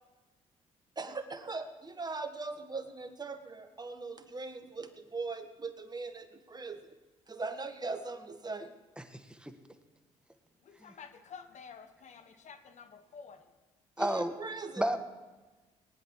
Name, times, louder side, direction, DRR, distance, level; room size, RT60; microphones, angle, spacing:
voice 1, 1.0-6.8 7.3-8.7 14.0-14.9, right 3 dB, 30° right, 8 dB, 1.5 m, -40 dB
voice 2, 9.0-9.5 14.0-14.3 14.8-15.0, right 1 dB, 5° right, 8 dB, 1.4 m, -32 dB
voice 3, 10.6-13.5 14.1-14.2, left 6 dB, 55° left, 9 dB, 1.4 m, -50 dB
19.0 x 10.5 x 4.7 m, 1.2 s
supercardioid pair, 60°, 15 cm